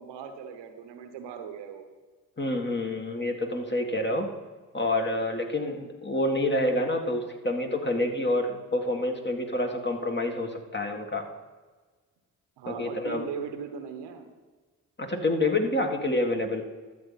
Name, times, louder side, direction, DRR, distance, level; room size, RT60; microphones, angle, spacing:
voice 1, 0.0-1.9 12.6-14.3, right 6 dB, 80° right, 7 dB, 1.1 m, -39 dB
voice 2, 2.4-4.3 4.7-11.2 12.6-13.3 15.0-16.6, left 1 dB, 25° left, 3 dB, 1.7 m, -28 dB
13.0 x 7.4 x 4.1 m, 1.4 s
hypercardioid pair, 40°, 42 cm